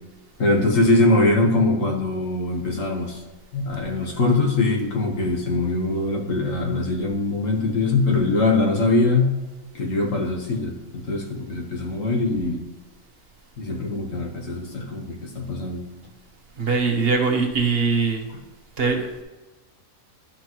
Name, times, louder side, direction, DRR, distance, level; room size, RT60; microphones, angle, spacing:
voice 1, 0.4-3.2 3.5-9.4 9.7-12.6 13.6-15.8, left 2 dB, 60° left, 1 dB, 1.6 m, -22 dB
voice 2, 16.6-18.3 18.8-19.2, right 4 dB, 45° right, 3 dB, 1.1 m, -22 dB
11.5 x 5.9 x 3.0 m, 1.1 s
omnidirectional pair, 1.5 m